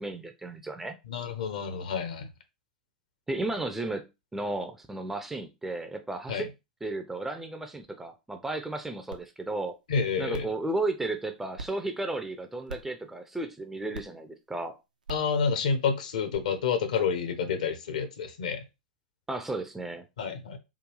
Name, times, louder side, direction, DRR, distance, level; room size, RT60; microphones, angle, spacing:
voice 1, 0.0-1.0 3.3-6.5 6.8-9.7 10.2-14.7 19.3-20.1, right 2 dB, 5° right, 0.4 m, -34 dB
voice 2, 1.1-2.3 6.3-6.5 9.9-10.5 15.1-18.6 20.2-20.6, left 6 dB, 60° left, 0.8 m, -29 dB
sound 1, 9.1-9.2 9.7-9.8 10.3-10.6 11.6-11.7 12.7-12.9 13.9-14.0 15.0-15.3 16.3-16.4, right 3 dB, 75° right, 0.5 m, -40 dB
3.6 x 2.3 x 3.2 m
figure-of-eight pair, 95°, 4 cm